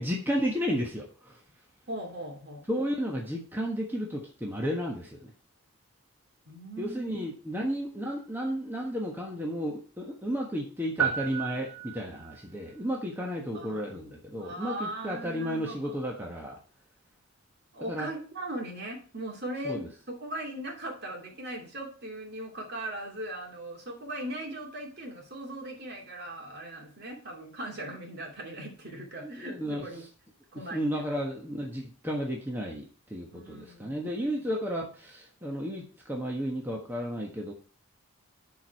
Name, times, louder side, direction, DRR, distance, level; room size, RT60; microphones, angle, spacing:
voice 1, 0.0-1.4 2.7-5.3 6.8-16.6 17.8-18.1 19.6-19.8 29.2-29.8 30.7-37.5, equal, 10° right, -1 dB, 1.3 m, -33 dB
voice 2, 1.9-2.7 6.5-7.3 13.5-14.0 14.3-16.0 17.7-19.9 20.2-30.1 30.5-31.0 33.3-34.3, right 1 dB, 45° right, 1 dB, 2.7 m, -39 dB
sound 1, 11.0-12.5, right 9 dB, 85° right, 1.1 m, -32 dB
11.5 x 4.8 x 4.7 m, 0.40 s
head